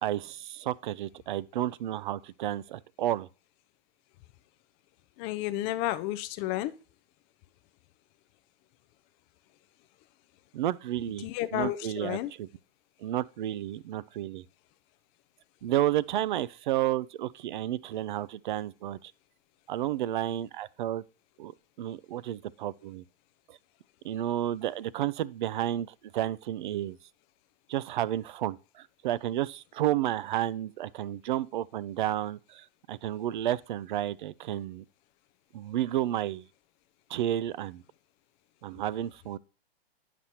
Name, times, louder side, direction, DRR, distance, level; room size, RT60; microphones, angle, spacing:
voice 1, 0.0-3.3 10.5-12.5 13.0-14.4 15.6-19.1 19.7-21.0 21.4-21.5 21.8-23.0 23.5-23.6 24.0-27.0 27.7-34.8 35.5-36.5 37.1-37.8 38.6-39.4, right 12 dB, 50° right, 0.5 m, -31 dB
voice 2, 5.2-6.7 11.2-12.3, left 15 dB, 20° left, 0.3 m, -31 dB
10.5 x 6.0 x 2.8 m
figure-of-eight pair, 115°, 31 cm